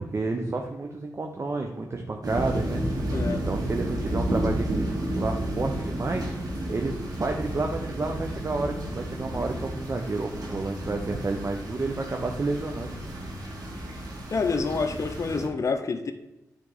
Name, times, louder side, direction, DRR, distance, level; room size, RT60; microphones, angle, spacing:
voice 1, 0.0-2.8 3.3-6.3 6.7-12.9, right 3 dB, 40° right, 2 dB, 0.8 m, -30 dB
sound 1, 2.2-15.5, right 1 dB, 70° right, 2.0 m, -32 dB
voice 2, 3.1-3.4 14.3-16.1, left 4 dB, 50° left, 8 dB, 0.6 m, -27 dB
9.3 x 3.5 x 4.0 m, 0.92 s
cardioid pair, 45°, 7 cm